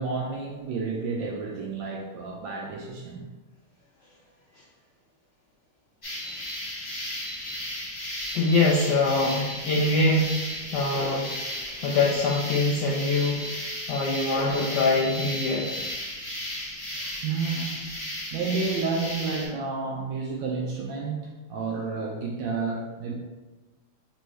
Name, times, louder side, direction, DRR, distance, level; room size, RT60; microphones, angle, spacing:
voice 1, 0.0-3.3 7.6-7.8 17.0-17.9 18.3-23.1, right 4 dB, 75° right, -2 dB, 1.1 m, -31 dB
sound 1, 6.0-19.5, left 1 dB, 40° left, 0.3 m, -35 dB
sound 2, 7.4-7.5 8.2-8.5 9.2-9.5 10.2-10.5 11.2-11.5 12.2-12.6 13.1-13.5 13.9-14.2 14.5-15.9, left 1 dB, 60° left, 1.8 m, -40 dB
voice 2, 8.3-10.3 10.7-13.5 13.9-15.7, left 2 dB, 85° left, -2 dB, 0.9 m, -24 dB
4.6 x 2.6 x 3.0 m, 1.2 s
omnidirectional pair, 2.4 m